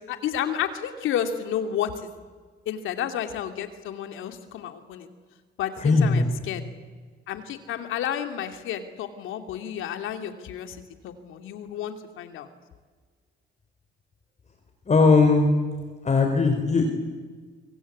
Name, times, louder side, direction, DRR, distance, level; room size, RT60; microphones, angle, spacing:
voice 1, 0.0-2.1 2.7-5.1 5.6-6.6 7.3-12.5, left 9 dB, 90° left, 7 dB, 2.8 m, -31 dB
voice 2, 5.8-6.3 14.9-15.5 16.0-16.9, left 4 dB, 35° left, 5 dB, 4.1 m, -19 dB
26.0 x 24.0 x 8.6 m, 1.5 s
cardioid pair, 90°, 20 cm